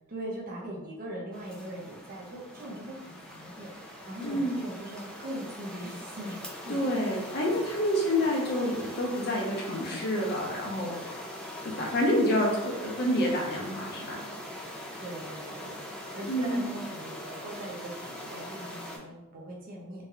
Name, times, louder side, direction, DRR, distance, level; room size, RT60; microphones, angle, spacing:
voice 1, 0.1-7.1 15.0-15.8 16.1-20.1, right 1 dB, 40° right, -4 dB, 0.6 m, -40 dB
sound 1, 1.3-19.0, left 1 dB, 5° left, 0.4 m, -42 dB
voice 2, 4.2-4.6 6.7-10.9 11.6-14.2 16.3-16.7, equal, 50° left, -3 dB, 0.7 m, -28 dB
3.1 x 2.7 x 2.3 m, 0.99 s
head